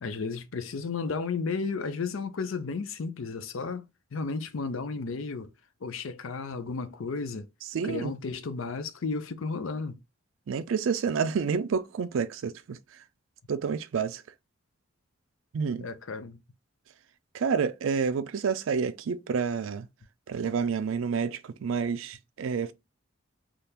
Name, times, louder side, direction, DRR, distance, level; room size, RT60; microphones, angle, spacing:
voice 1, 0.0-5.5 5.8-7.5 7.8-10.0 15.8-16.4, left 4 dB, 80° left, 0.5 m, -33 dB
voice 2, 7.7-8.1 10.5-12.8 13.5-14.2 15.5-15.9 17.3-19.9 20.3-22.7, right 6 dB, 75° right, 0.4 m, -29 dB
3.5 x 2.4 x 2.8 m
head